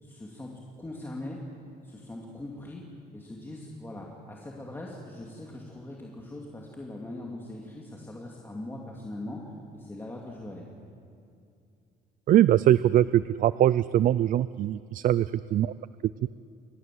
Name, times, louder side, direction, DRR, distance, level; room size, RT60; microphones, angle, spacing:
voice 1, 0.0-0.5 0.8-1.4 1.8-2.8 3.1-10.6, left 1 dB, 15° left, -2 dB, 2.8 m, -41 dB
voice 2, 12.3-15.7, right 12 dB, 55° right, 17 dB, 0.4 m, -22 dB
30.0 x 14.0 x 7.8 m, 2.4 s
cardioid pair, 110°, 17 cm